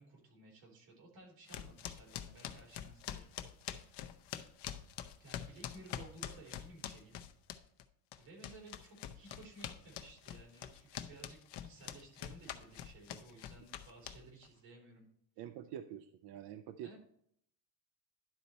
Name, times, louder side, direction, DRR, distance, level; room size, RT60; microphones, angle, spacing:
voice 1, 0.0-3.3 3.6-4.0 5.2-7.2 8.2-15.1 15.4-15.5 16.8-17.0, right 2 dB, 85° right, -1 dB, 3.5 m, -56 dB
sound 1, 1.5-7.8 8.1-14.5, left 10 dB, 65° left, 0.7 m, -45 dB
voice 2, 15.4-16.9, right 10 dB, 65° right, 10 dB, 0.5 m, -46 dB
11.0 x 4.1 x 4.2 m, 0.67 s
cardioid pair, 165°, 44 cm